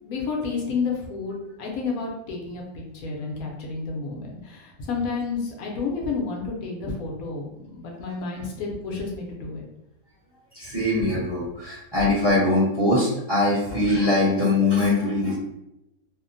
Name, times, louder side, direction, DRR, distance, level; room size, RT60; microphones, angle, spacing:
voice 1, 0.0-9.6 11.1-11.2, left 4 dB, 75° left, -1 dB, 1.0 m, -30 dB
voice 2, 10.5-15.3, left 2 dB, 25° right, -8 dB, 0.7 m, -22 dB
2.8 x 2.1 x 2.5 m, 0.87 s
omnidirectional pair, 1.5 m